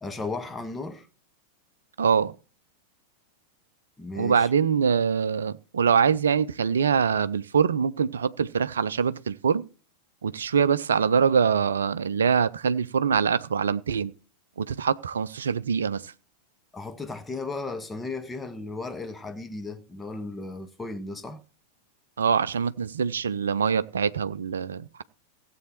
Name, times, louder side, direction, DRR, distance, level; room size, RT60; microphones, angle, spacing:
voice 1, 0.0-1.1 4.0-4.5 16.7-21.4, left 3 dB, 10° left, 1.2 m, -35 dB
voice 2, 2.0-2.3 4.2-9.6 10.2-14.1 14.6-16.1 22.2-25.0, right 6 dB, 65° right, 0.5 m, -24 dB
16.0 x 7.9 x 4.4 m
figure-of-eight pair, 90°, 0 cm